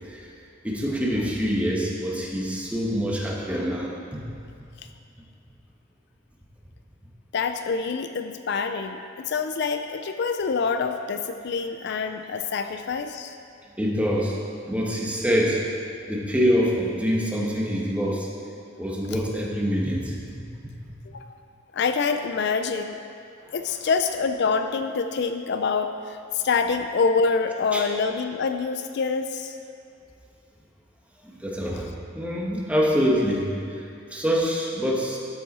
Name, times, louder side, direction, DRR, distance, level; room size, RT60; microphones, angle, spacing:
voice 1, 0.6-4.2 13.8-14.4 14.7-15.6 16.1-18.3 18.8-20.2 20.6-20.7 27.7-27.8 31.4-31.9 32.1-33.8 34.1-35.2, equal, 5° right, -2 dB, 1.2 m, -25 dB
voice 2, 7.3-13.4 19.0-19.2 21.1-21.4 21.7-23.0 23.5-29.6, left 5 dB, 55° left, 7 dB, 0.4 m, -26 dB
12.5 x 7.5 x 4.2 m, 2.4 s
head